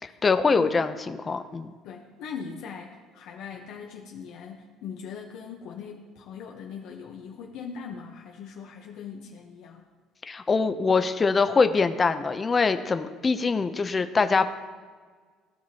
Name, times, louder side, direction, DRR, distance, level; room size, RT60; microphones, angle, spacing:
voice 1, 0.0-1.7 10.3-14.5, left 4 dB, 25° left, 9 dB, 0.5 m, -23 dB
voice 2, 1.8-9.9, left 6 dB, 70° left, 0 dB, 0.8 m, -40 dB
15.5 x 5.9 x 2.9 m, 1.5 s
cardioid pair, 110°, 0 cm